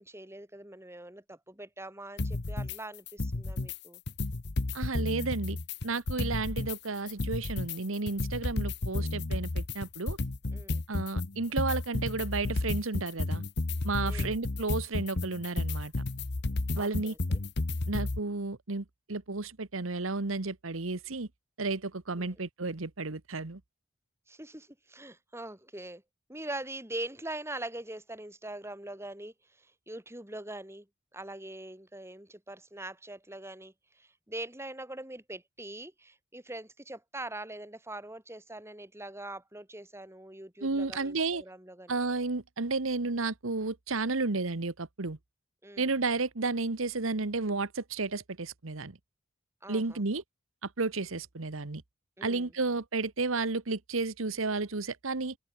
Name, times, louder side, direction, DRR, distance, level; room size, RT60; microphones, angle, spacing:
voice 1, 0.0-4.0 10.5-10.8 14.0-14.4 16.8-17.4 22.2-22.4 24.3-26.0 26.3-30.9 31.1-41.9 45.6-45.9 49.6-50.0 52.2-52.5, right 1 dB, 15° right, 7.1 m, -43 dB
sound 1, 2.2-2.8 3.1-3.8 4.1-6.8 7.1-18.2, left 2 dB, 55° left, 1.0 m, -32 dB
voice 2, 4.7-5.6 5.8-10.2 10.9-13.4 13.8-15.9 16.7-17.1 17.9-21.3 21.6-23.6 40.6-41.4 41.9-45.2 45.8-49.0 49.7-50.2 50.6-51.8 52.2-55.4, right 3 dB, 85° right, 1.3 m, -32 dB
open air
head